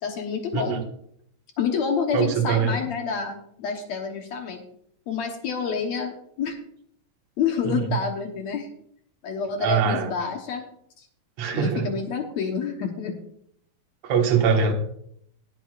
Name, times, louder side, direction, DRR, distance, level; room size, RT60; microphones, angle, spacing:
voice 1, 0.0-0.8 1.6-4.6 5.1-6.6 7.4-8.7 9.2-10.6 11.0-11.1 11.5-13.1, left 6 dB, 65° left, 3 dB, 1.9 m, -28 dB
voice 2, 2.1-2.8 7.6-8.0 9.6-10.1 11.4-11.9 14.0-14.7, right 6 dB, 55° right, 2 dB, 2.4 m, -23 dB
20.0 x 8.2 x 2.5 m, 0.69 s
omnidirectional pair, 4.2 m